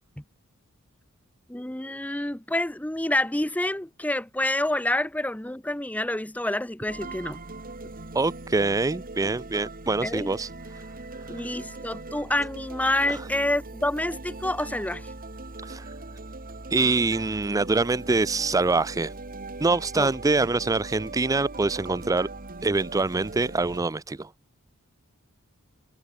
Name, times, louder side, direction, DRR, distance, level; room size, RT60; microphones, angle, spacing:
voice 1, 1.5-7.4 10.0-10.3 11.3-15.1 19.9-20.1 20.4-20.5, left 1 dB, 5° left, 0.9 m, -28 dB
sound 1, 6.9-23.8, right 2 dB, 40° right, 2.6 m, -40 dB
voice 2, 8.1-10.5 10.7-10.8 13.1-13.2 15.6-15.9 16.7-19.1 19.6-22.3 22.6-24.3, right 3 dB, 15° right, 0.4 m, -25 dB
head